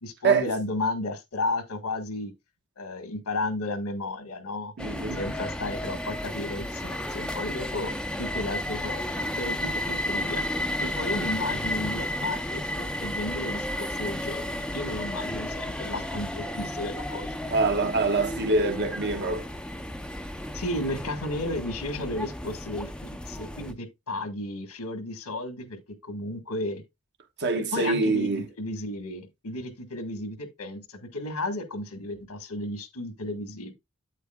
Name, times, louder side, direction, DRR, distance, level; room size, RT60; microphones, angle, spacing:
voice 1, 0.0-2.3 2.8-4.7 5.1-10.5 10.8-17.4 20.5-22.9 23.2-26.8 27.5-28.3 28.6-33.7, left 2 dB, 80° left, 1.5 m, -33 dB
sound 1, 4.8-23.7, left 1 dB, 5° left, 0.5 m, -33 dB
voice 2, 4.8-5.2 17.5-19.4 27.4-28.5, right 3 dB, 50° right, 1.2 m, -25 dB
8.3 x 8.2 x 2.3 m
head